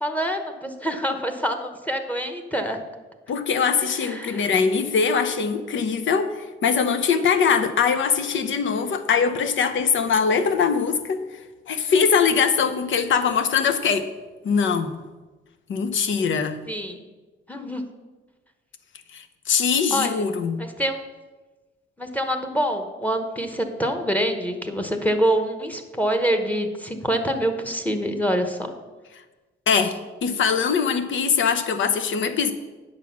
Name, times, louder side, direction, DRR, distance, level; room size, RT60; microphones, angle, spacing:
voice 1, 0.0-2.8 4.0-4.4 16.7-17.0 17.5-17.8 19.9-20.3 20.6-21.0 22.0-28.7, equal, 5° left, 6 dB, 1.1 m, -26 dB
voice 2, 3.3-11.2 11.7-14.1 14.4-15.0 15.7-16.6 19.1-20.6 29.7-32.5, left 6 dB, 70° left, 9 dB, 0.9 m, -22 dB
9.1 x 6.3 x 5.9 m, 1.2 s
cardioid pair, 100°, 21 cm